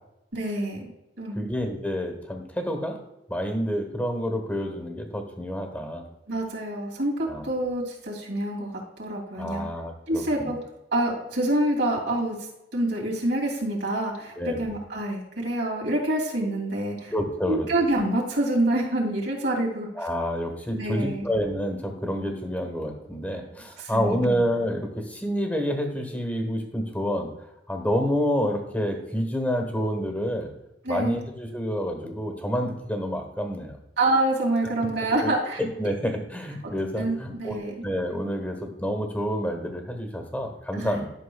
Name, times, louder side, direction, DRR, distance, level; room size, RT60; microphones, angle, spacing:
voice 1, 0.3-0.9 1.2-1.4 6.3-8.7 9.0-9.7 10.1-10.6 10.9-12.4 12.7-17.1 17.5-20.1 20.7-21.3 23.8-24.2 30.8-31.2 34.0-35.6 36.6-37.7 40.7-41.0, right 1 dB, 85° right, -2 dB, 2.8 m, -27 dB
voice 2, 1.4-3.0 3.3-6.0 7.2-7.4 9.4-10.5 14.4-14.6 17.1-17.7 20.0-27.3 27.7-30.5 30.9-33.8 35.2-35.3 35.6-41.1, equal, 10° left, 4 dB, 1.3 m, -28 dB
12.0 x 6.2 x 2.3 m, 0.89 s
head